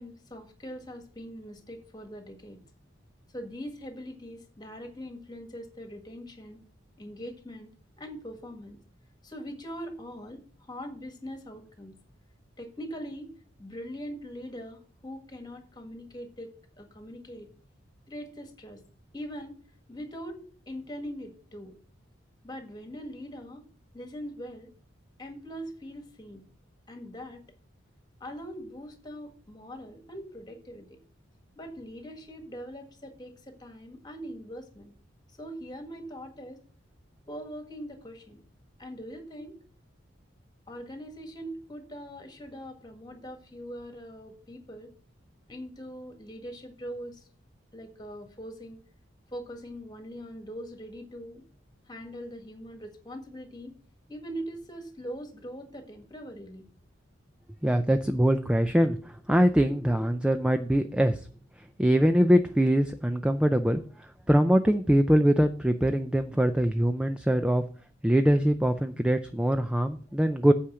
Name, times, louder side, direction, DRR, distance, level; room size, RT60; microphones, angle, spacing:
voice 1, 0.0-2.6 3.3-6.6 7.0-7.7 8.0-8.8 9.2-11.9 12.6-13.3 13.6-17.5 18.1-18.8 19.1-19.6 19.9-20.4 20.7-21.7 22.4-23.6 23.9-24.7 25.2-26.4 26.9-27.4 28.2-31.0 31.6-34.9 35.4-36.6 37.3-38.4 38.8-39.5 40.7-44.9 45.5-47.3 47.7-48.8 49.3-51.5 51.9-53.8 54.1-56.6, equal, 20° left, 5 dB, 1.7 m, -42 dB
voice 2, 57.6-61.3 61.8-67.6 68.0-70.5, equal, 5° right, 8 dB, 0.4 m, -23 dB
8.6 x 5.0 x 6.9 m, 0.43 s
head